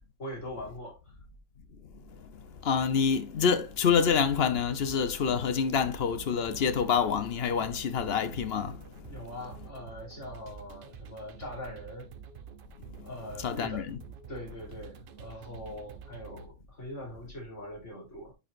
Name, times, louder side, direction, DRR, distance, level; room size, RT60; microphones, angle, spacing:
voice 1, 0.2-1.1 9.1-12.1 13.0-13.9 14.3-18.3, left 1 dB, 85° left, 3.9 m, -42 dB
voice 2, 2.6-8.8 13.4-13.8, left 6 dB, 60° left, 0.9 m, -27 dB
sound 1, 3.9-16.5, right 8 dB, 55° right, 0.7 m, -48 dB
9.8 x 4.8 x 2.5 m
omnidirectional pair, 1.2 m